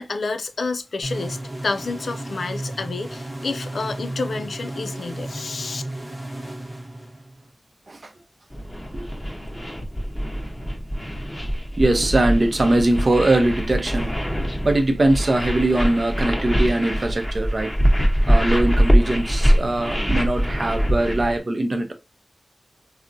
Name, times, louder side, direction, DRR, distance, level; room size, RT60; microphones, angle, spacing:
voice 1, 0.0-1.4 1.6-5.8, left 3 dB, 85° left, 0.3 m, -29 dB
sound 1, 1.0-7.5, right 1 dB, 40° right, 0.9 m, -33 dB
sound 2, 8.5-21.4, equal, 5° left, 0.8 m, -23 dB
voice 2, 11.8-14.2 14.6-17.7 18.3-21.9, right 2 dB, 55° right, 0.6 m, -21 dB
3.5 x 2.1 x 2.6 m
wide cardioid pair, 65°, 0 cm